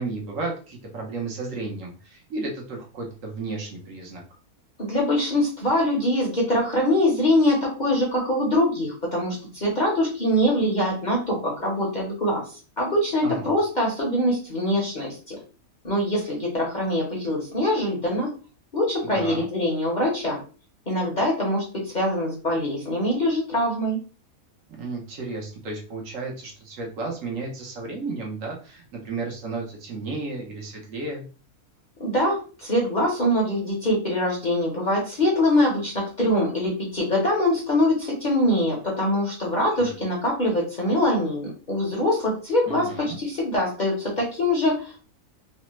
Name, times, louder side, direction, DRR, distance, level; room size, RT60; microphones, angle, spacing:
voice 1, 0.0-4.2 13.2-13.5 19.1-19.5 24.8-31.3 39.8-40.0 42.7-43.2, right 3 dB, 65° right, 0 dB, 1.1 m, -33 dB
voice 2, 4.8-12.4 12.8-15.4 15.8-18.3 18.7-20.4 20.9-24.0 32.0-45.0, left 1 dB, 40° left, -4 dB, 0.8 m, -23 dB
3.2 x 2.0 x 3.0 m, 0.37 s
omnidirectional pair, 1.6 m